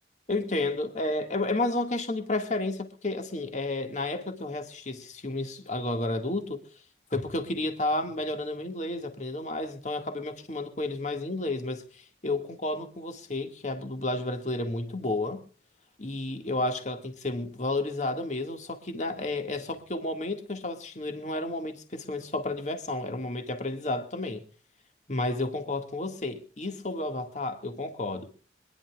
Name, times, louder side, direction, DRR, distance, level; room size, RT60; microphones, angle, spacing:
voice 1, 0.3-6.6 7.1-15.4 16.0-24.4 25.1-28.3, left 2 dB, 40° left, 2.0 m, -31 dB
26.0 x 11.0 x 2.4 m
head